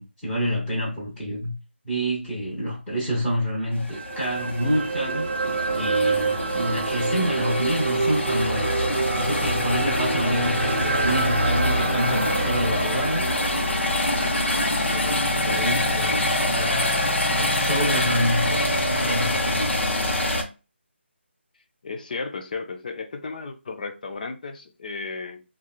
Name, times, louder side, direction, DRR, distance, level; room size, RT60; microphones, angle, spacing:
voice 1, 0.0-1.5 1.8-5.3 5.7-13.3 14.9-16.8 17.3-19.8, equal, 5° left, 1.2 m, -28 dB
sound 1, 3.7-20.4, left 1 dB, 70° left, 0.9 m, -25 dB
sound 2, 3.9-16.2 16.6-16.7, right 4 dB, 60° right, 0.4 m, -28 dB
voice 2, 21.8-25.4, left 4 dB, 40° left, 0.5 m, -34 dB
3.5 x 2.4 x 2.4 m
figure-of-eight pair, 160°, 7 cm